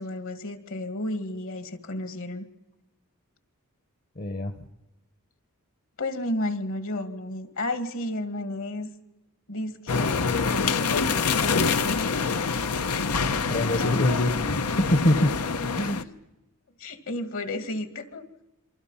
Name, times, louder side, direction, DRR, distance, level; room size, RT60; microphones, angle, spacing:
voice 1, 0.0-2.5 6.0-8.9 9.5-12.1 15.9-16.1 16.8-18.2, left 1 dB, 65° left, 9 dB, 2.2 m, -32 dB
voice 2, 4.2-4.5 13.2-15.3 15.7-16.0, left 1 dB, 40° left, 8 dB, 1.1 m, -25 dB
sound 1, 9.9-16.0, left 5 dB, 85° left, 1.0 m, -26 dB
27.5 x 24.5 x 5.7 m, 0.95 s
head